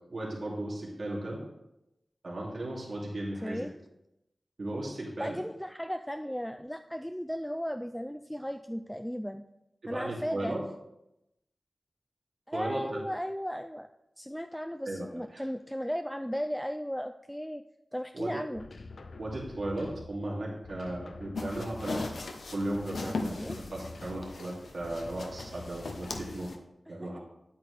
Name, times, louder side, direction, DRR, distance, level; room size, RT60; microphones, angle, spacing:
voice 1, 0.1-1.4 2.2-3.7 4.6-5.4 9.8-10.6 12.5-13.0 14.8-15.1 15.3-15.4 18.1-18.4 19.2-22.0 22.5-26.5 26.9-27.2, right 1 dB, 65° right, -4 dB, 2.6 m, -36 dB
voice 2, 5.2-9.4 9.9-10.6 12.5-13.9 14.2-17.6 17.9-18.7 23.3-23.6, equal, 5° left, 7 dB, 0.3 m, -35 dB
sound 1, 18.6-20.3 20.6-22.4 22.7-24.4 24.8-26.5, left 3 dB, 65° left, 0.5 m, -46 dB
sound 2, 21.3-26.6, left 3 dB, 85° left, 0.9 m, -39 dB
9.5 x 8.5 x 3.3 m, 0.88 s
wide cardioid pair, 85°, 0 cm